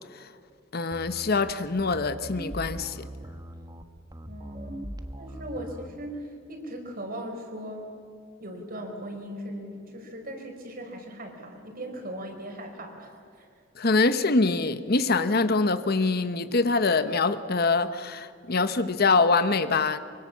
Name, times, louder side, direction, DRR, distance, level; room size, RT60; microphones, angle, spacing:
voice 1, 0.7-3.1 13.8-20.0, left 3 dB, 55° left, 12 dB, 1.0 m, -24 dB
sound 1, 0.9-6.0, equal, 20° right, 1.3 m, -40 dB
voice 2, 4.3-7.9 8.4-13.5, right 1 dB, 50° right, 3 dB, 4.6 m, -39 dB
24.5 x 24.0 x 7.3 m, 2.3 s
head